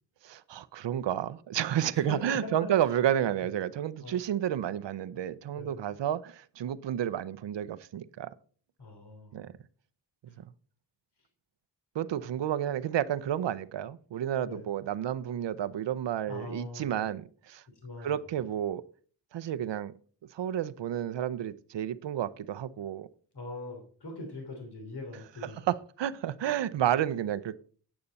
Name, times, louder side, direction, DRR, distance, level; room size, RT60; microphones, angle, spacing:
voice 1, 0.2-8.3 9.3-9.5 10.4-10.5 11.9-17.6 18.0-18.8 19.3-19.9 20.3-23.1 25.7-27.6, right 10 dB, 80° right, 15 dB, 0.7 m, -31 dB
voice 2, 1.9-3.0 3.4-3.5 4.0-4.2 5.6-5.8 8.8-9.4 14.4-14.7 16.3-16.9 17.8-18.1 23.3-25.7, left 2 dB, 65° left, 3 dB, 3.3 m, -42 dB
8.8 x 8.6 x 4.0 m, 0.43 s
cardioid pair, 60°, 42 cm